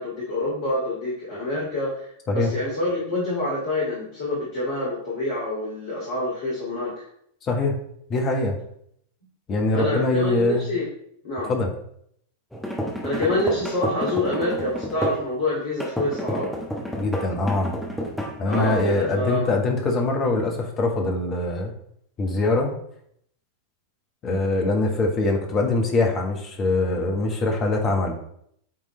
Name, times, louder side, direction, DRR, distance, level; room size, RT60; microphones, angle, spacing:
voice 1, 0.0-7.1 9.7-10.9 11.2-11.5 13.0-16.5 18.4-19.5, left 1 dB, 55° left, -7 dB, 2.1 m, -27 dB
voice 2, 7.4-7.8 8.1-8.6 9.5-10.6 11.5-11.7 16.9-17.7 18.4-21.7 22.2-22.7 24.2-28.1, left 2 dB, 30° left, 1 dB, 1.4 m, -23 dB
sound 1, 12.5-15.3 15.8-18.9, equal, 5° left, 1.3 m, -30 dB
8.7 x 3.7 x 3.3 m, 0.69 s
figure-of-eight pair, 90°, 0 cm